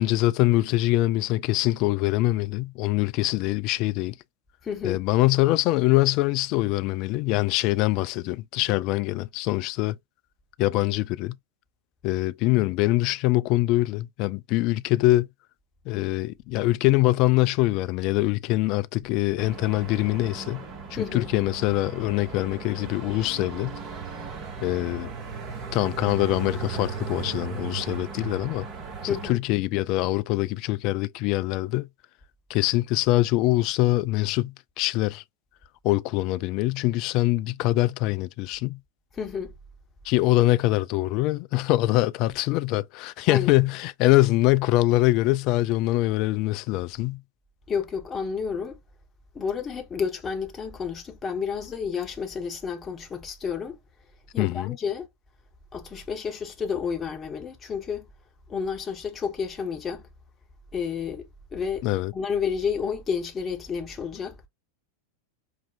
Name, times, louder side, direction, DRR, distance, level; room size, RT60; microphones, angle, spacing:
voice 1, 0.0-4.1 4.8-9.9 10.6-11.3 12.0-15.3 15.9-20.6 20.9-23.8 24.6-25.1 25.7-28.7 29.0-31.9 32.5-35.2 35.8-38.8 40.0-47.2 54.4-54.8 61.8-62.1, left 17 dB, 40° left, 0.3 m, -24 dB
voice 2, 4.6-5.0 21.0-21.3 29.1-29.4 39.1-39.5 43.3-43.6 47.7-48.8 49.3-53.8 54.3-55.1 55.7-58.1 58.5-60.1 60.7-61.9 62.1-64.4, left 6 dB, 20° left, 1.2 m, -30 dB
sound 1, 19.4-29.3, right 5 dB, 30° right, 1.3 m, -37 dB
5.4 x 2.4 x 2.5 m
figure-of-eight pair, 90°, 0 cm